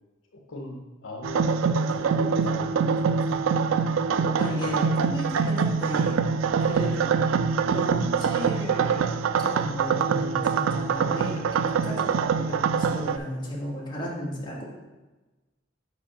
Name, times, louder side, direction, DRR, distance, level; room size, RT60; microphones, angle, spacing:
voice 1, 0.5-3.1 4.1-4.2 4.5-5.0 7.1-7.3, left 2 dB, 80° left, 1 dB, 0.8 m, -39 dB
sound 1, 1.2-13.2, right 6 dB, 85° right, 0.3 m, -24 dB
voice 2, 2.0-3.5 4.1-6.2 6.6-7.1 7.6-9.0 9.4-14.6, equal, 25° left, -4 dB, 1.7 m, -35 dB
5.4 x 5.0 x 5.0 m, 1.2 s
head